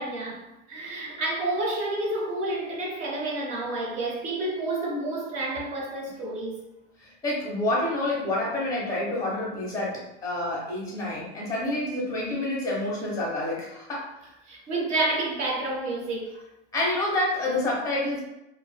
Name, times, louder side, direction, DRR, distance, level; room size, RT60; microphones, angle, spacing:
voice 1, 0.0-6.6 14.5-16.3, right 2 dB, 25° right, 0.4 m, -29 dB
voice 2, 7.0-14.3 16.7-18.2, left 1 dB, 10° left, 0.7 m, -28 dB
2.4 x 2.4 x 2.2 m
supercardioid pair, 150°, 30 cm